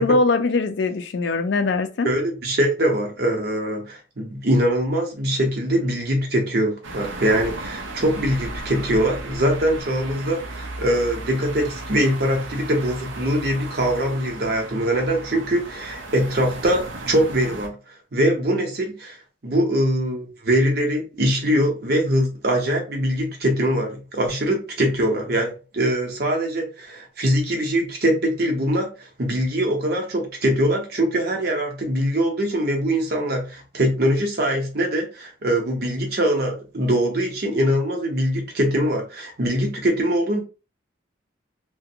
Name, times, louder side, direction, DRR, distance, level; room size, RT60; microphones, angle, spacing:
voice 1, 0.0-2.1, left 3 dB, 65° left, 0.4 m, -21 dB
voice 2, 2.0-17.7 18.1-19.2 19.4-40.4, equal, 55° right, 0.8 m, -22 dB
sound 1, 6.8-17.7, right 2 dB, 85° right, 0.6 m, -35 dB
2.5 x 2.2 x 2.7 m
head